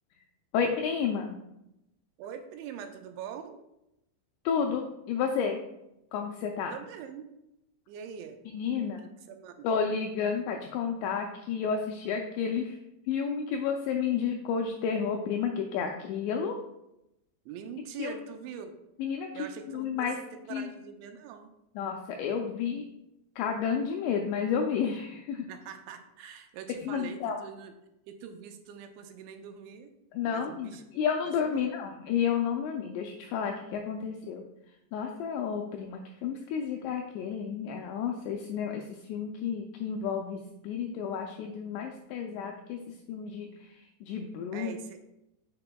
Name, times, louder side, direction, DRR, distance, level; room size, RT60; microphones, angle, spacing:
voice 1, 0.5-1.4 4.5-5.6 6.1-6.7 8.5-9.1 9.6-12.8 13.1-16.6 18.0-18.1 19.0-19.3 19.7-20.2 20.5-20.7 21.8-22.8 23.4-25.5 26.8-27.4 30.1-34.4 34.9-42.8 43.1-44.8, left 7 dB, 85° left, 3 dB, 2.5 m, -31 dB
voice 2, 2.2-3.6 6.7-7.2 7.9-8.4 9.0-9.8 17.5-18.8 19.3-20.1 20.5-21.5 25.5-27.7 28.1-29.9 30.2-30.9 31.4-31.7 44.5-45.0, right 8 dB, 80° right, 6 dB, 2.8 m, -43 dB
7.6 x 6.6 x 2.3 m, 0.86 s
omnidirectional pair, 5.5 m